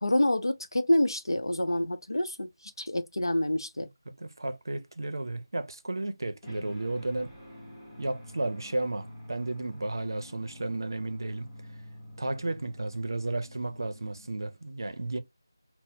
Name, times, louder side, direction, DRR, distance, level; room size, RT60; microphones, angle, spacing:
voice 1, 0.0-2.5 2.8-3.9, left 1 dB, 80° left, 0.6 m, -27 dB
voice 2, 4.2-7.3 8.0-11.5 12.2-15.2, right 2 dB, 65° right, 0.5 m, -33 dB
sound 1, 6.4-14.7, left 1 dB, 10° left, 1.0 m, -48 dB
4.0 x 2.0 x 2.8 m
figure-of-eight pair, 165°, 2 cm